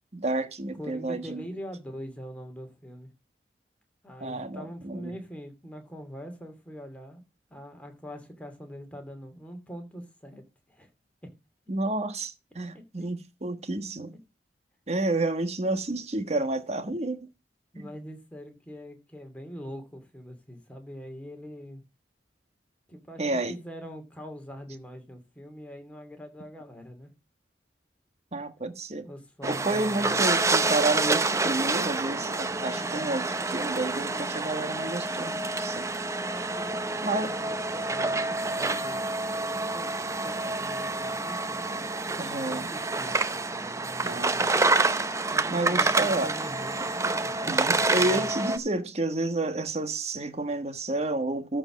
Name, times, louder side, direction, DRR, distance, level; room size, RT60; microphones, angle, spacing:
voice 1, 0.1-1.4 4.2-5.1 11.7-14.1 14.9-17.2 17.8-17.9 23.2-23.6 28.3-29.1 29.4-35.9 37.0-37.3 42.2-42.7 44.0-44.5 45.5-46.3 47.5-51.6, right 2 dB, 35° right, 1.4 m, -30 dB
voice 2, 0.7-3.1 4.0-7.2 7.5-10.4 10.7-10.9 11.2-11.3 12.7-12.8 17.7-21.8 22.9-27.1 29.0-30.2 32.8-33.1 36.0-39.0 39.4-44.6 45.3-47.5 47.9-48.3, equal, 10° left, 2.7 m, -43 dB
sound 1, 29.4-48.6, right 3 dB, 15° right, 0.7 m, -28 dB
13.5 x 5.0 x 6.3 m
head